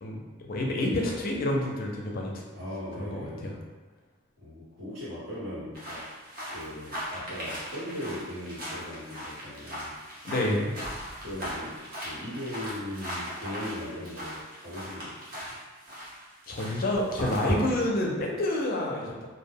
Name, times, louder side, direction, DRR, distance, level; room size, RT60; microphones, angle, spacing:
voice 1, 0.0-2.3 2.6-2.7 3.0-3.5 10.2-10.8 16.5-19.1, left 1 dB, 45° left, -1 dB, 0.4 m, -28 dB
voice 2, 2.5-3.6 4.4-6.0 6.5-9.9 11.2-11.8 12.0-15.4, left 1 dB, 75° right, -10 dB, 1.2 m, -39 dB
sound 1, 5.8-15.5 15.8-17.7, equal, 45° right, 0.7 m, -37 dB
2.2 x 2.1 x 3.4 m, 1.3 s
head